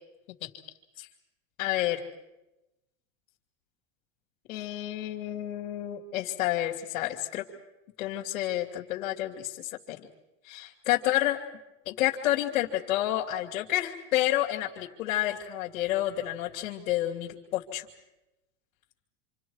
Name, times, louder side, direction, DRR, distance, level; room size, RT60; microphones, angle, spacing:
voice 1, 1.6-2.0 4.5-7.4 8.0-10.0 10.4-11.4 11.9-17.9, left 14 dB, 85° left, -3 dB, 2.7 m, -29 dB
28.0 x 26.5 x 4.8 m, 0.98 s
supercardioid pair, 140°, 40 cm